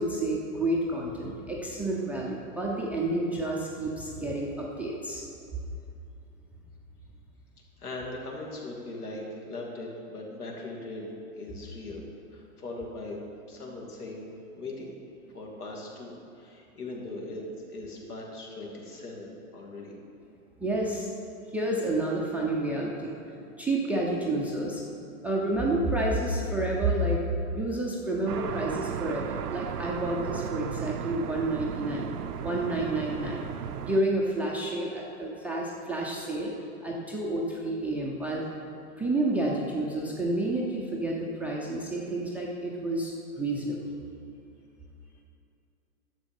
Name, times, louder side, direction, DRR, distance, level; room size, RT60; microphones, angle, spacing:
voice 1, 0.0-5.2 20.6-21.1 21.5-23.1 23.6-24.8 25.2-27.2 27.5-32.1 32.4-33.4 33.8-36.5 36.8-38.5 39.0-43.9, right 1 dB, 5° right, -4 dB, 0.4 m, -29 dB
voice 2, 7.8-12.0 12.3-13.2 13.5-14.3 14.5-14.9 15.3-17.4 17.7-19.9, left 2 dB, 80° left, -1 dB, 2.6 m, -39 dB
sound 1, 28.3-34.0, right 8 dB, 90° right, 0.7 m, -35 dB
11.0 x 7.3 x 5.3 m, 2.6 s
hypercardioid pair, 125°, 44 cm